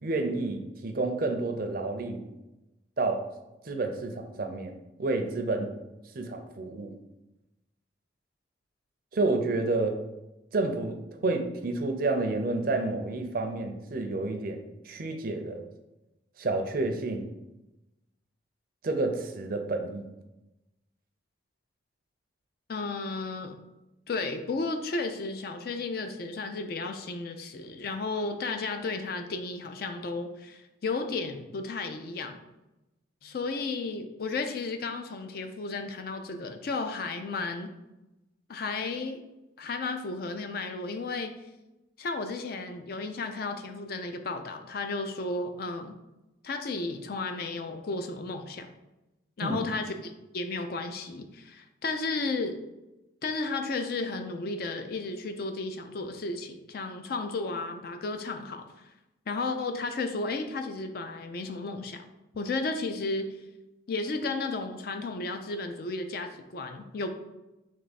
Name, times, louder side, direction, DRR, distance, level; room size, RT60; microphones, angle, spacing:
voice 1, 0.0-2.2 3.0-3.3 3.6-5.7 6.1-7.0 9.1-10.0 10.5-15.6 16.4-17.3 18.8-20.1 49.4-49.6, right 2 dB, 50° right, 5 dB, 0.5 m, -30 dB
voice 2, 22.7-23.6 24.1-32.4 33.2-37.7 38.5-39.2 39.6-41.3 42.0-46.0 46.4-48.7 49.4-49.9 50.3-52.6 53.2-58.6 59.3-62.0 62.4-63.4 63.9-67.1, left 3 dB, 50° left, 7 dB, 0.4 m, -33 dB
3.4 x 3.2 x 4.1 m, 0.98 s
head